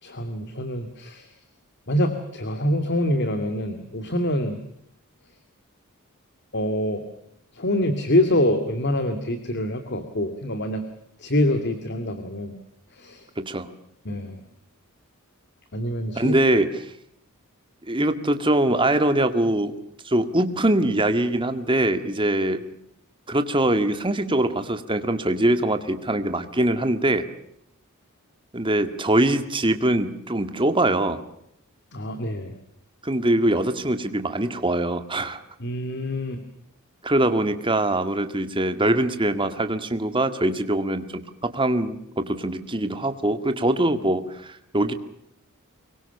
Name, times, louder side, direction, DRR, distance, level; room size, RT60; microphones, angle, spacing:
voice 1, 0.0-1.3 1.9-4.6 6.5-7.0 7.5-10.8 11.2-12.6 12.9-13.3 14.1-14.4 15.7-16.4 31.9-32.6 35.6-36.4, left 1 dB, 50° left, 9 dB, 2.3 m, -25 dB
voice 2, 13.4-13.7 16.2-16.9 17.9-19.7 20.0-22.6 23.3-27.3 28.5-31.2 33.0-35.4 37.0-44.9, right 1 dB, 20° right, 9 dB, 1.9 m, -23 dB
25.5 x 22.5 x 6.8 m, 0.74 s
head